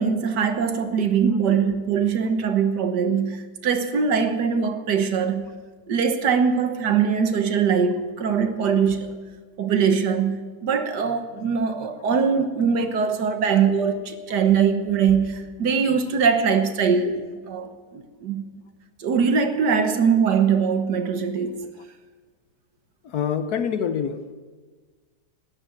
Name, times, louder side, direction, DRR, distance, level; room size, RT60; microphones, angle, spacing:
voice 1, 0.0-5.5 5.9-9.2 9.6-18.4 19.0-21.7, right 6 dB, 70° right, 1.7 m, -22 dB
voice 2, 23.0-24.3, left 7 dB, 65° left, 1.3 m, -26 dB
13.0 x 10.5 x 8.8 m
omnidirectional pair, 1.9 m